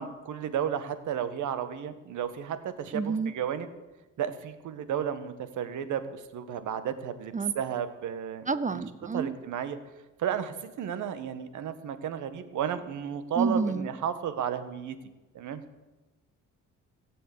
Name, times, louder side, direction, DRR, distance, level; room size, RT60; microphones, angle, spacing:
voice 1, 0.0-3.7 4.2-8.8 9.1-9.8 10.2-15.0 15.3-15.6, right 8 dB, 80° right, 11 dB, 1.5 m, -33 dB
voice 2, 2.9-3.3 7.3-7.5 8.5-9.4 13.4-13.9, right 4 dB, 25° right, 15 dB, 0.7 m, -29 dB
18.5 x 7.8 x 8.4 m, 1.1 s
cardioid pair, 90°, 30 cm